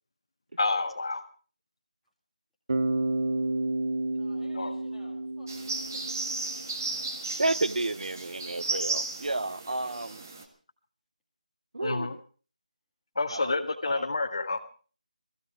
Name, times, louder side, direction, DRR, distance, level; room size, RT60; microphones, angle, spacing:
voice 1, 0.6-1.2 4.5-4.7 11.8-12.1 13.1-14.6, left 3 dB, 40° left, 1.7 m, -29 dB
Bass guitar, 2.7-6.7, right 2 dB, 40° right, 1.3 m, -31 dB
voice 2, 4.1-6.2, left 2 dB, ahead, 1.9 m, -56 dB
sound 1, 5.5-10.4, right 3 dB, 20° right, 1.6 m, -34 dB
voice 3, 7.4-10.2 11.7-12.2 13.3-13.5 13.8-14.1, right 2 dB, 75° right, 0.7 m, -31 dB
19.0 x 15.5 x 4.8 m
figure-of-eight pair, 180°, 4 cm